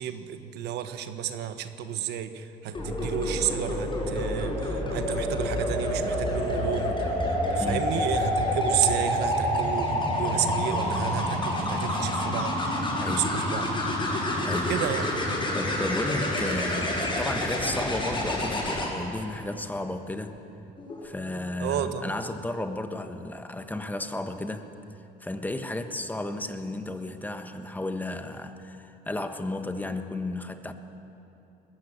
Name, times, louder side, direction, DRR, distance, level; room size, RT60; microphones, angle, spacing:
voice 1, 0.0-12.8 13.0-13.7 14.7-15.1 21.6-22.1, right 10 dB, 80° right, 9 dB, 1.3 m, -31 dB
sound 1, 2.7-18.9 20.8-21.0, left 1 dB, 30° left, 6.5 m, -28 dB
voice 2, 7.6-8.0 13.0-13.4 14.4-14.8 15.5-20.3 21.0-24.7 25.2-30.7, left 2 dB, 10° left, 8 dB, 1.3 m, -33 dB
21.0 x 15.0 x 10.0 m, 2.9 s
cardioid pair, 110°, 17 cm